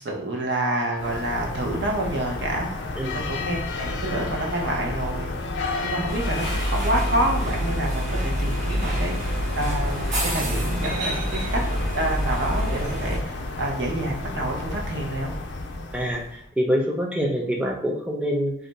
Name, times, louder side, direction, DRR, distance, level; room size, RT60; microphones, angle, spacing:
voice 1, 0.0-5.3 5.8-11.6 11.9-15.3, right 1 dB, 80° right, 0 dB, 0.7 m, -28 dB
sound 1, 1.0-16.4, left 2 dB, 80° left, 0.5 m, -31 dB
sound 2, 6.1-13.2, equal, 40° right, 0.7 m, -27 dB
voice 2, 15.9-18.5, equal, 5° right, -1 dB, 0.4 m, -25 dB
2.4 x 2.2 x 3.9 m, 0.65 s
head